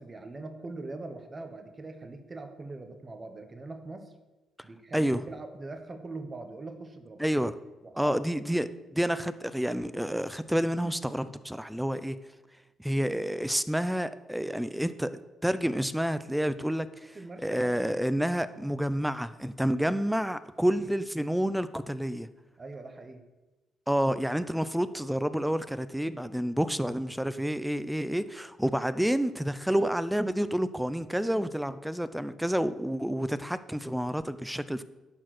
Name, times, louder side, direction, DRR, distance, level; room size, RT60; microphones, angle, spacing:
voice 1, 0.0-4.1 4.6-7.2 7.8-8.2 17.1-17.8 22.6-23.2, right 2 dB, 30° right, 6 dB, 1.0 m, -42 dB
voice 2, 4.9-5.2 7.2-7.6 8.0-12.2 12.8-17.2 17.4-22.3 23.9-34.8, equal, 5° right, 14 dB, 0.5 m, -29 dB
11.0 x 4.7 x 6.0 m, 1.1 s
cardioid pair, 90°, 0 cm